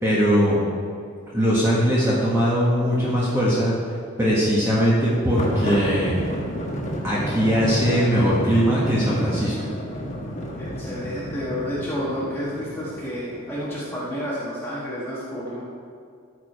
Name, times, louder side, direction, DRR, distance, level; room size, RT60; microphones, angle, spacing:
voice 1, 0.0-0.6 1.3-3.7 4.2-6.1 7.0-9.5, equal, 10° right, -8 dB, 1.3 m, -20 dB
sound 1, 5.4-14.2, equal, 35° left, 1.3 m, -31 dB
voice 2, 10.6-15.6, equal, 10° left, -8 dB, 1.3 m, -30 dB
13.5 x 4.8 x 4.8 m, 2.4 s
head